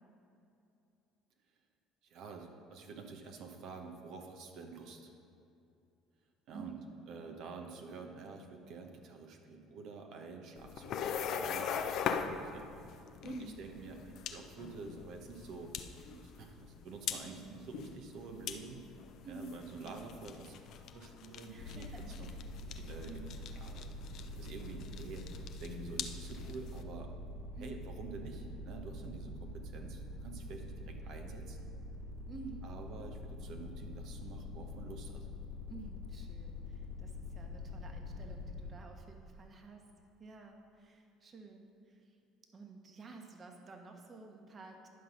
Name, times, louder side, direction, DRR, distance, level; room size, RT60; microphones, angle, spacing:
voice 1, 2.0-5.1 6.5-6.7 7.1-12.7 13.2-15.7 16.1-18.8 19.2-22.3 22.7-23.2 23.5-23.9 24.4-27.1 27.6-31.7 32.6-35.3, right 4 dB, 60° right, 3 dB, 1.1 m, -48 dB
voice 2, 6.5-6.9 13.2-13.6 19.2-20.0 21.5-22.2 23.0-23.4 25.9-26.2 27.6-27.9 29.4-29.5 32.3-32.7 35.7-39.8 40.2-42.1 42.5-44.9, right 3 dB, 35° right, 3 dB, 1.4 m, -51 dB
sound 1, 10.5-26.8, left 7 dB, 55° left, 0.6 m, -42 dB
sound 2, 21.6-38.7, left 2 dB, 80° left, 1.6 m, -45 dB
11.0 x 5.7 x 5.5 m, 2.7 s
hypercardioid pair, 60°, 0 cm